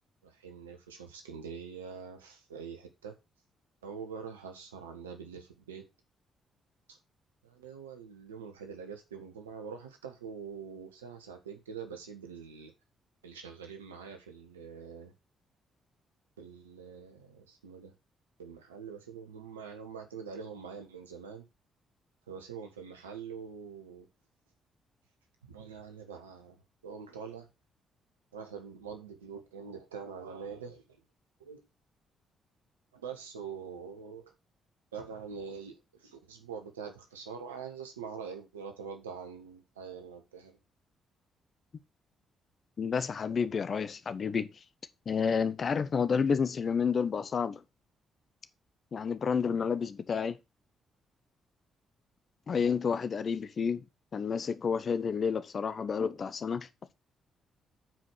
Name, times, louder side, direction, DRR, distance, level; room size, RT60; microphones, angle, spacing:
voice 1, 0.2-3.1 3.8-5.8 6.9-7.0 7.4-12.7 13.2-15.1 16.4-17.9 18.4-21.4 22.3-24.1 25.5-26.6 26.8-27.5 28.3-30.8 31.4-31.6 32.9-34.3 34.9-40.6, right 6 dB, 85° right, 1.3 m, -44 dB
voice 2, 42.8-44.5 45.1-47.6 48.9-50.4 52.5-53.8 54.1-56.7, left 6 dB, 45° left, 0.9 m, -30 dB
8.2 x 4.9 x 6.0 m
figure-of-eight pair, 40°, 0 cm